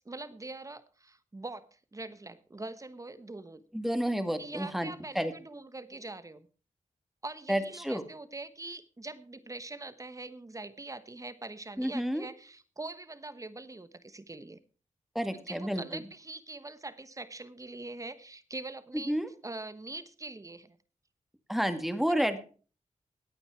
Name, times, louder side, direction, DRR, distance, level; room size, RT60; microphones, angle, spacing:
voice 1, 0.0-3.6 4.4-6.5 7.2-14.6 15.3-19.2 19.4-20.8 22.1-22.2, right 2 dB, 25° right, 13 dB, 1.1 m, -43 dB
voice 2, 3.7-5.3 7.5-8.0 11.8-12.3 15.2-16.0 19.1-19.3 21.5-22.4, equal, ahead, 8 dB, 1.8 m, -30 dB
18.0 x 8.8 x 4.6 m, 0.39 s
wide cardioid pair, 105°, 13 cm